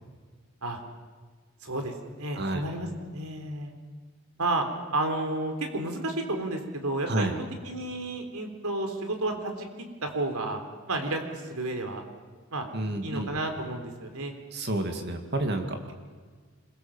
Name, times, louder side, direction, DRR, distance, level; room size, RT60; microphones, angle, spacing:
voice 1, 1.6-3.7 4.4-4.7 4.9-10.6 10.9-12.0 12.5-12.7 13.0-14.3, right 2 dB, 90° right, 5 dB, 3.8 m, -31 dB
voice 2, 12.7-13.3 14.5-15.8, right 1 dB, 50° right, 5 dB, 2.4 m, -29 dB
26.0 x 22.5 x 7.4 m, 1.5 s
head